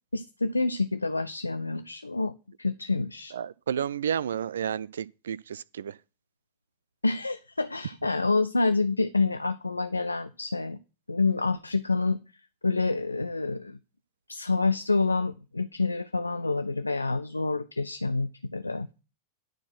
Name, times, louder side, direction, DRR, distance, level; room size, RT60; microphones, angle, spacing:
voice 1, 0.1-2.3 2.6-3.3 7.0-10.8 11.1-12.2 12.6-13.8 14.3-18.9, left 3 dB, 80° left, 0.4 m, -27 dB
voice 2, 3.3-5.9, right 8 dB, 65° right, 0.4 m, -31 dB
11.5 x 4.4 x 6.1 m
figure-of-eight pair, 90°, 0 cm